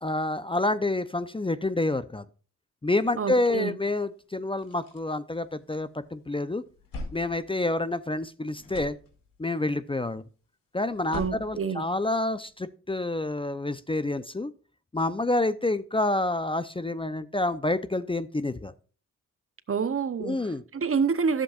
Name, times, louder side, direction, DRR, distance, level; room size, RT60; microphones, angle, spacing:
voice 1, 0.0-2.2 2.8-6.6 7.1-9.0 9.4-10.2 10.7-14.5 14.9-18.7 20.2-20.6, left 2 dB, 15° left, 0.6 m, -28 dB
voice 2, 3.2-3.8 11.1-11.9 19.7-20.4 20.7-21.4, right 6 dB, 40° right, 0.8 m, -27 dB
sound 1, 4.4-6.0 6.4-8.3 8.5-9.6 10.9-12.5, left 2 dB, 90° left, 2.5 m, -43 dB
11.5 x 7.6 x 2.4 m
cardioid pair, 60°, 33 cm